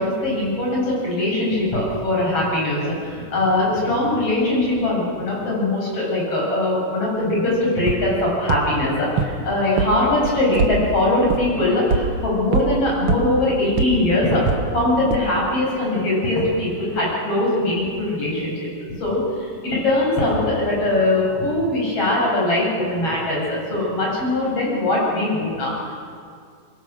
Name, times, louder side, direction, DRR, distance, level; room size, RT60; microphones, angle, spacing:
voice 1, 0.0-14.4 14.7-25.9, left 1 dB, 40° left, -4 dB, 8.6 m, -21 dB
sound 1, 7.9-8.0 8.5-8.6 9.2-9.3 9.8-9.9 10.2-10.7 11.3-11.4 11.9-12.0 12.5-12.6 13.1-13.2 13.8-13.9 14.5-14.6 15.1-15.2, right 5 dB, 50° right, 2.0 m, -20 dB
25.0 x 22.0 x 6.4 m, 2.2 s
omnidirectional pair, 3.9 m